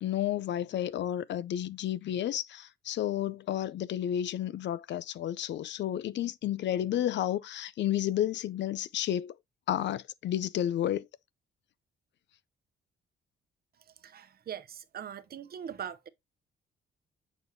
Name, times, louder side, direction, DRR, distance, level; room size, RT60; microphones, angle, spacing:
voice 1, 0.0-9.3 9.7-11.1, left 11 dB, 65° left, 0.5 m, -31 dB
voice 2, 14.0-16.1, right 8 dB, 50° right, 0.8 m, -41 dB
7.1 x 6.1 x 2.7 m
cardioid pair, 90°, 20 cm